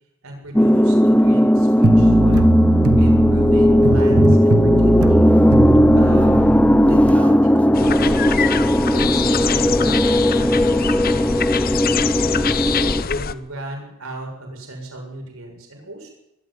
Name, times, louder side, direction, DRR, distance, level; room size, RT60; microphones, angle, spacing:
voice 1, 0.2-2.6 2.9-5.3 5.9-8.5 8.9-11.5 12.1-16.1, right 1 dB, 70° right, 1 dB, 7.2 m, -37 dB
sound 1, 0.5-13.0, equal, 5° left, 0.8 m, -16 dB
sound 2, 1.8-7.2, right 2 dB, 90° right, 1.7 m, -19 dB
sound 3, 7.7-13.3, left 6 dB, 40° left, 0.8 m, -24 dB
22.0 x 13.0 x 9.7 m, 0.85 s
head